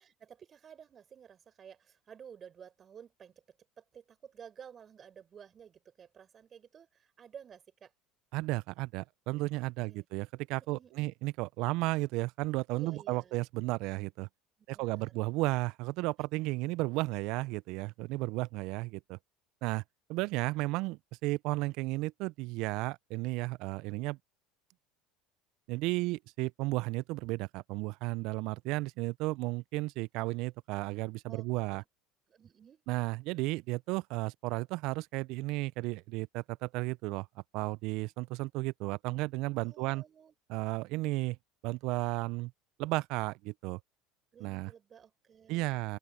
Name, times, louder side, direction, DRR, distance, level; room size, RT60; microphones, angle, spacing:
voice 1, 0.0-3.4 3.8-7.9 9.5-10.0 10.7-11.1 12.7-13.3 14.7-15.1 31.3-31.9 32.3-32.8 39.6-40.3 44.3-45.8, right 8 dB, 40° right, 6.0 m, -53 dB
voice 2, 8.3-14.3 14.7-19.2 19.6-19.8 20.1-24.2 25.7-31.8 32.9-37.3 37.5-40.0 40.5-41.4 41.6-42.5 42.8-43.8 44.4-44.7 45.5-46.0, right 21 dB, 65° right, 0.7 m, -34 dB
open air
hypercardioid pair, 75°, 0 cm